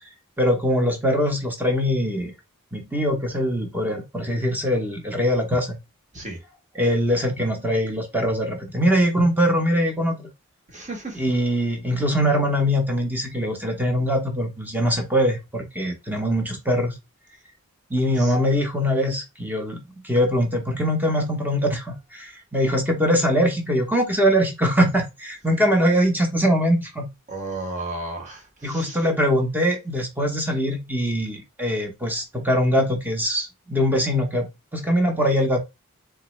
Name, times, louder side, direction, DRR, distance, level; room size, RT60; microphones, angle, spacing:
voice 1, 0.4-2.3 2.7-5.8 6.7-10.3 11.1-16.9 17.9-19.8 20.0-27.1 28.6-34.5 34.7-35.6, equal, 10° right, 0.8 m, -22 dB
voice 2, 10.7-11.2 18.2-18.3 27.3-29.0, right 2 dB, 35° right, 1.1 m, -33 dB
3.9 x 2.4 x 3.1 m
head